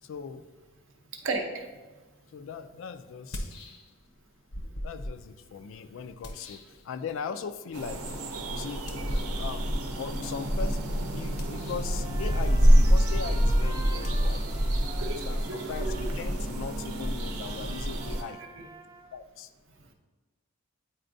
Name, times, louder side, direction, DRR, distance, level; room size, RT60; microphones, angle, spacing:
voice 1, 0.0-0.5 2.3-3.6 4.8-8.1 8.5-8.9 9.4-14.6 15.0-18.4 19.1-19.5, left 6 dB, 60° left, 11 dB, 0.3 m, -39 dB
voice 2, 1.1-1.7 14.9-16.1 19.8-19.9, right 3 dB, 60° right, 4 dB, 0.7 m, -35 dB
sound 1, 2.2-2.3 3.1-4.2 4.5-7.4 8.9-9.5 11.2-12.0 14.0-16.6, left 1 dB, 75° left, 0.7 m, -43 dB
sound 2, 7.7-18.2, equal, 90° right, 0.8 m, -26 dB
Trumpet, 11.9-19.2, right 3 dB, 15° right, 0.5 m, -48 dB
8.8 x 4.2 x 2.6 m, 1.3 s
head